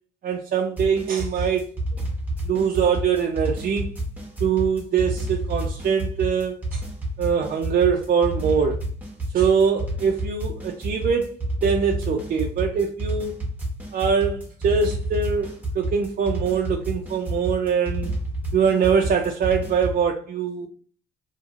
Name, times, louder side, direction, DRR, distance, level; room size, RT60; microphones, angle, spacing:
voice 1, 0.2-1.6 2.4-3.9 4.4-6.8 7.2-8.8 9.3-13.3 13.9-18.1 18.5-20.7, right 6 dB, 45° right, 0.4 m, -23 dB
sound 1, 0.8-20.0, right 1 dB, 10° right, 1.0 m, -29 dB
2.8 x 2.7 x 2.4 m
cardioid pair, 90°, 20 cm